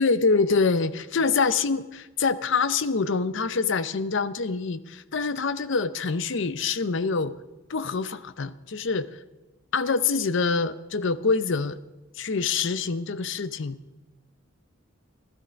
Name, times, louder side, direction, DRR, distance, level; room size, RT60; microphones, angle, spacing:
voice 1, 0.0-7.4 7.7-9.2 9.7-11.8 12.2-13.8, left 4 dB, 65° left, 14 dB, 0.7 m, -25 dB
15.5 x 12.5 x 5.2 m, 1.1 s
head